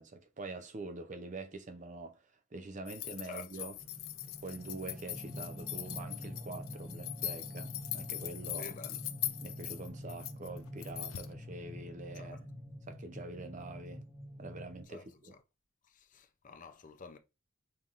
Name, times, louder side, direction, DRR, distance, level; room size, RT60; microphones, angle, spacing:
voice 1, 0.0-3.8 4.4-8.7 9.4-12.4 12.9-14.0 14.4-15.3, right 2 dB, 40° right, 0.6 m, -45 dB
sound 1, 2.9-11.3, left 13 dB, 90° left, 0.5 m, -41 dB
voice 2, 3.2-3.7 8.6-9.0 12.1-12.4 14.9-15.4 15.9-17.2, left 4 dB, 40° left, 0.5 m, -50 dB
sound 2, 3.8-14.8, equal, 5° left, 1.4 m, -46 dB
5.6 x 3.5 x 2.5 m
head